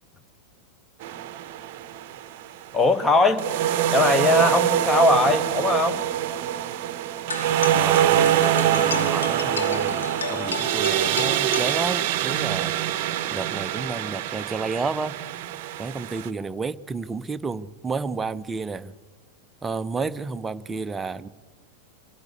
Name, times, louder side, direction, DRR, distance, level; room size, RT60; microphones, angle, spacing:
sound 1, 1.0-2.5 3.4-16.3, right 11 dB, 45° right, 0.8 m, -24 dB
voice 1, 2.7-3.4 3.9-6.0, left 2 dB, 15° left, 11 dB, 1.2 m, -20 dB
sound 2, 7.3-12.3, left 4 dB, 70° left, 1.3 m, -33 dB
voice 2, 7.7-10.0 10.3-13.0 13.3-15.2 15.8-18.9 19.6-21.3, right 4 dB, 15° right, 13 dB, 0.6 m, -31 dB
25.0 x 13.0 x 8.6 m, 1.4 s
figure-of-eight pair, 90°, 0 cm